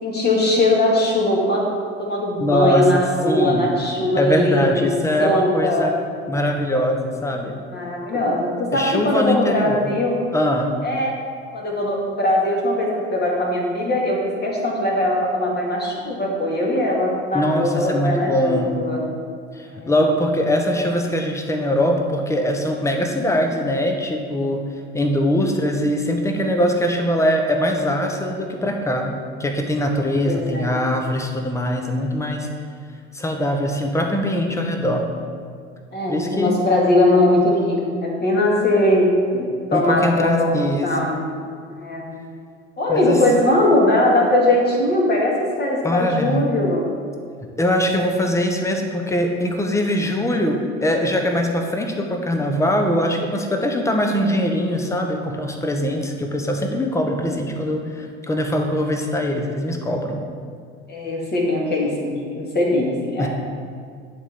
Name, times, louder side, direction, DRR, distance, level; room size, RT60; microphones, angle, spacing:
voice 1, 0.0-1.7 2.0-4.9 5.2-5.9 7.7-10.2 10.8-11.1 11.5-19.0 19.7-19.9 30.2-30.7 35.9-40.6 40.8-41.2 41.8-42.1 42.8-46.9 60.9-63.3, left 1 dB, 30° left, -2 dB, 2.0 m, -20 dB
voice 2, 2.4-3.7 4.2-5.9 6.3-7.6 8.7-9.9 10.3-10.8 17.3-18.8 19.5-24.6 24.9-32.5 33.1-35.1 36.1-36.6 39.7-41.1 42.9-43.2 45.8-46.5 47.6-60.2 63.2-63.3, equal, 10° left, 3 dB, 0.9 m, -22 dB
11.0 x 3.7 x 4.4 m, 2.2 s
figure-of-eight pair, 70°, 34 cm